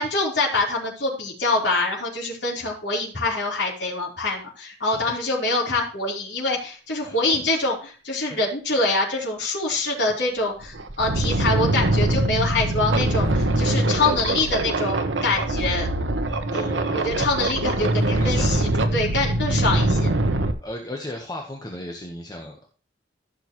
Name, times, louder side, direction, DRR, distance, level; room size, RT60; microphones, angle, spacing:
voice 1, 0.0-15.9 16.5-16.6 16.9-20.1, left 2 dB, 70° left, -4 dB, 4.1 m, -25 dB
voice 2, 7.0-7.4 8.3-8.4 13.2-13.4 16.5-17.0 18.1-18.6 20.6-22.7, left 1 dB, 20° left, 0 dB, 1.3 m, -36 dB
sound 1, 10.1-10.2 10.6-20.5, right 1 dB, 85° right, 1.0 m, -23 dB
15.0 x 6.5 x 3.1 m, 0.38 s
head